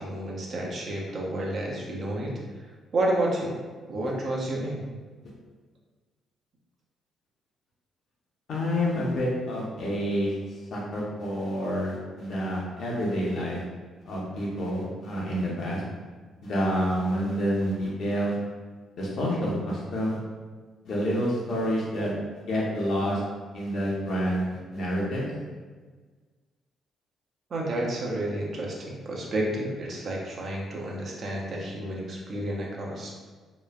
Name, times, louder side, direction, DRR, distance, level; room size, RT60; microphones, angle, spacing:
voice 1, 0.0-2.4 2.9-3.6 3.9-4.9 27.5-33.1, right 1 dB, 55° right, -2 dB, 0.6 m, -30 dB
voice 2, 8.5-10.3 10.7-13.6 14.1-15.8 16.4-18.4 19.0-20.2 20.8-23.2 23.5-25.2, equal, 65° left, -4 dB, 0.8 m, -28 dB
3.0 x 2.1 x 2.3 m, 1.4 s
cardioid pair, 90°, 0 cm